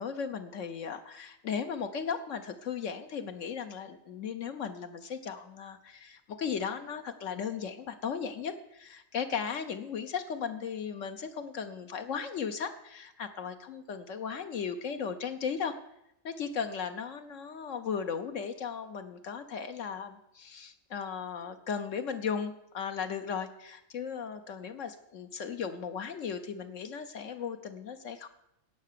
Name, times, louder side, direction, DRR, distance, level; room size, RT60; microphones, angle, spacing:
voice 1, 0.0-15.8 16.2-28.3, left 6 dB, 75° left, 7 dB, 1.2 m, -36 dB
17.5 x 6.6 x 6.8 m, 0.82 s
omnidirectional pair, 1.3 m